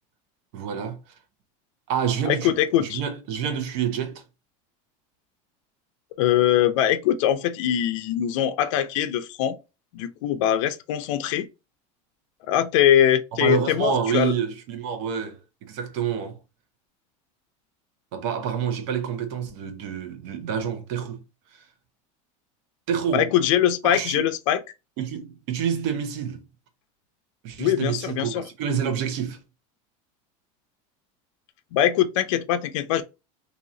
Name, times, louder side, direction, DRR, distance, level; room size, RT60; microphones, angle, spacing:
voice 1, 0.5-1.0 1.9-2.5 2.8-4.2 13.4-16.4 18.1-21.2 21.5-21.6 22.9-23.3 23.8-24.3 25.0-26.4 27.4-29.4, right 8 dB, 60° right, 1.0 m, -28 dB
voice 2, 2.3-3.0 6.2-9.6 9.9-11.5 12.5-14.3 23.1-24.6 27.6-28.4 31.7-33.0, left 11 dB, 75° left, 0.6 m, -22 dB
2.9 x 2.8 x 3.8 m
supercardioid pair, 155°, 17 cm